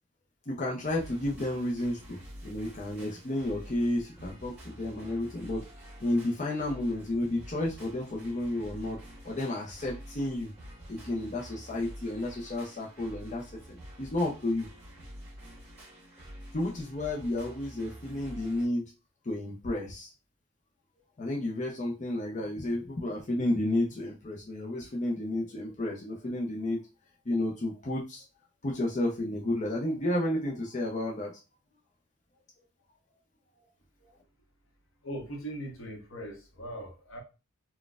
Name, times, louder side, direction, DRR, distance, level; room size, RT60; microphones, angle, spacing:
voice 1, 0.5-5.6 6.0-9.0 9.2-10.5 10.9-13.6 14.0-14.7 16.5-18.9 19.2-20.1 21.2-26.9 27.3-28.2 28.6-31.4, left 1 dB, 35° left, -2 dB, 0.5 m, -31 dB
sound 1, 0.8-18.7, equal, 5° right, 1.5 m, -48 dB
voice 2, 35.0-37.2, right 1 dB, 70° left, 2 dB, 0.9 m, -40 dB
4.0 x 2.2 x 2.3 m, 0.28 s
head